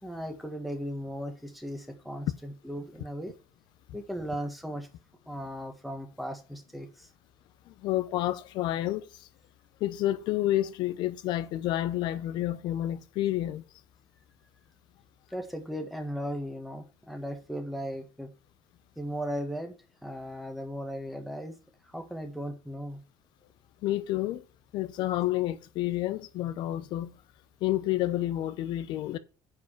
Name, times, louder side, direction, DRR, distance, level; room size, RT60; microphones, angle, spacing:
voice 1, 0.0-3.3 3.9-4.9 5.3-7.1 15.3-18.3 19.0-19.7 20.0-21.5 21.9-23.0, equal, ahead, 1.7 m, -37 dB
voice 2, 7.7-9.3 9.8-13.6 23.8-24.4 24.7-27.2 27.6-29.2, left 14 dB, 65° left, 0.8 m, -29 dB
9.6 x 4.8 x 6.1 m
cardioid pair, 145°, 8 cm